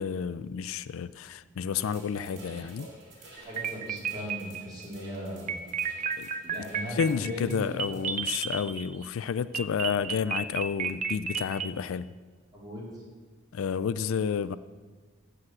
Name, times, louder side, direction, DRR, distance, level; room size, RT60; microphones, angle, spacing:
voice 1, 0.0-2.9 3.3-3.5 6.2-6.3 7.0-12.1 13.5-14.6, left 7 dB, 80° left, 16 dB, 0.4 m, -30 dB
sound 1, 1.7-8.6, right 3 dB, 55° right, 2.5 m, -54 dB
voice 2, 2.0-2.9 3.4-5.6 6.4-7.5 12.5-13.0, equal, 20° right, -6 dB, 3.9 m, -39 dB
sound 2, 3.4-4.8 5.5-9.1 9.5-11.7, right 6 dB, 35° right, 0.5 m, -32 dB
14.5 x 5.0 x 7.6 m, 1.4 s
head